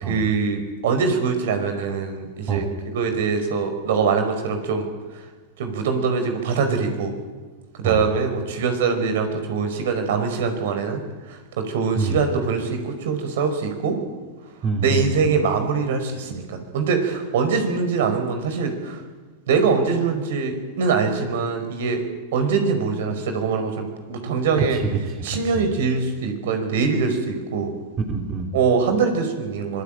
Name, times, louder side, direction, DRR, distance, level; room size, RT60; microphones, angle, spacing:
voice 1, 0.1-2.6 2.9-4.9 5.6-7.1 7.8-11.0 11.3-14.0 14.8-19.0 19.5-22.0 22.3-24.8 25.2-27.7 28.5-29.8, right 5 dB, 70° right, 7 dB, 5.0 m, -23 dB
voice 2, 14.6-15.1 24.6-25.7 28.0-28.5, right 5 dB, 30° right, 4 dB, 2.9 m, -26 dB
25.5 x 17.5 x 9.0 m, 1.4 s
hypercardioid pair, 110°, 0 cm